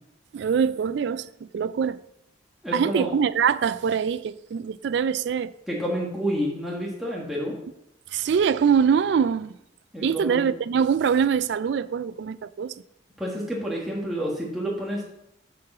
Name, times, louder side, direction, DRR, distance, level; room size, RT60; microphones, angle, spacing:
voice 1, 0.3-2.0 2.7-5.5 8.1-9.5 10.0-12.7, right 7 dB, 65° right, 0.3 m, -23 dB
voice 2, 2.6-3.1 5.7-7.6 9.9-10.5 13.2-15.0, equal, ahead, 1.5 m, -29 dB
8.3 x 4.7 x 6.0 m
head